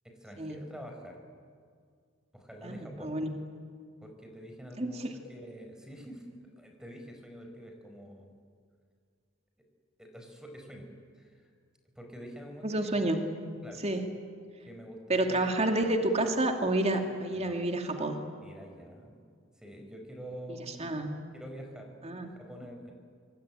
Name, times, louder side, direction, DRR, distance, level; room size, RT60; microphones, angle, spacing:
voice 1, 0.0-1.2 2.3-3.1 4.0-8.3 10.0-11.5 11.9-13.0 13.6-13.8 14.7-15.5 17.3-19.1 19.6-20.8 21.3-22.9, equal, 5° right, 3 dB, 4.6 m, -47 dB
voice 2, 2.6-3.3 4.8-5.1 12.6-13.3 13.8-14.1 15.1-18.2 20.8-21.1 22.0-22.3, right 1 dB, 35° right, 4 dB, 2.5 m, -29 dB
26.5 x 22.5 x 10.0 m, 2.1 s
head